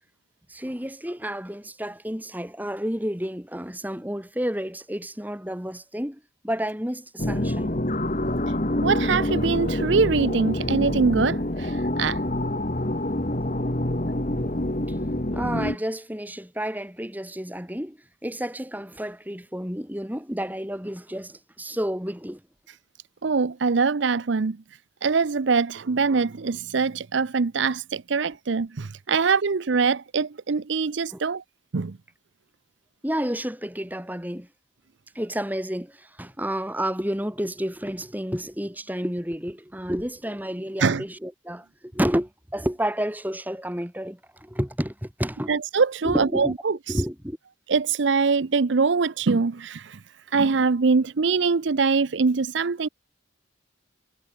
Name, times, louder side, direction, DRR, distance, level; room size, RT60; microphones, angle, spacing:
voice 1, 0.5-7.7 14.9-15.0 15.3-22.4 31.1-31.2 33.0-34.5 35.1-45.5 46.0-46.5 46.9-47.4, equal, 10° right, 3.8 m, -30 dB
sound 1, 7.2-15.8, left 1 dB, 40° left, 1.9 m, -26 dB
voice 2, 8.8-12.2 23.2-24.6 25.0-31.4 31.7-31.9 40.8-41.0 45.5-46.8 47.7-50.0 50.3-52.9, right 4 dB, 65° right, 0.6 m, -23 dB
head